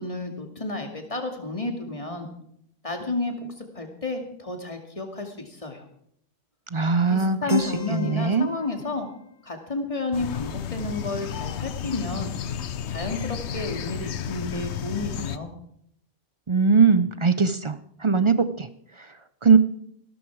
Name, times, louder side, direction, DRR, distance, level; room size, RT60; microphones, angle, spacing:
voice 1, 0.0-2.3 2.8-3.3 3.7-5.8 7.1-9.1 9.4-12.4 12.9-15.5, left 3 dB, 25° left, 4 dB, 2.3 m, -31 dB
voice 2, 6.7-7.6 7.9-8.5 16.5-17.8 18.0-18.7 19.4-19.6, right 5 dB, 40° right, 12 dB, 0.4 m, -20 dB
Keyboard (musical), 7.5-11.4, left 6 dB, 85° left, 2.9 m, -46 dB
sound 1, 10.1-15.4, left 8 dB, 65° left, 1.0 m, -32 dB
15.5 x 13.5 x 4.7 m, 0.70 s
omnidirectional pair, 1.3 m